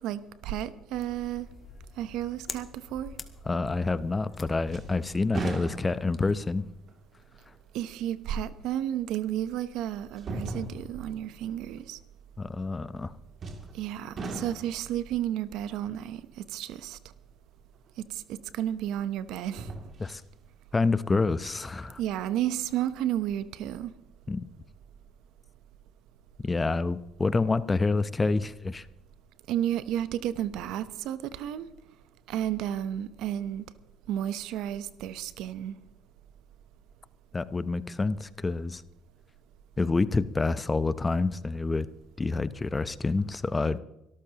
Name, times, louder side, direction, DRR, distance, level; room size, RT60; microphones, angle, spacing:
voice 1, 0.0-1.5 2.0-3.1 7.7-12.0 13.7-16.2 16.5-17.0 18.1-19.7 22.0-23.9 29.5-31.7 32.3-33.6 34.1-35.7, right 11 dB, 75° right, 14 dB, 0.8 m, -32 dB
sound 1, 0.9-6.6, left 5 dB, 40° left, 1.4 m, -47 dB
voice 2, 3.5-6.6 12.4-13.1 20.0-20.2 20.7-22.0 24.3-24.4 26.4-28.9 37.3-38.8 39.8-41.9 42.2-43.8, left 3 dB, 25° left, 15 dB, 0.7 m, -27 dB
sound 2, 4.0-4.4 4.7-6.2 6.9-7.0 8.8-8.9 10.2-11.1 13.4-13.8 14.2-14.9 17.9-18.0 19.4-20.3 20.7-20.8, right 2 dB, 50° right, 2.5 m, -38 dB
23.5 x 13.5 x 2.9 m, 0.90 s
supercardioid pair, 75°, 0 cm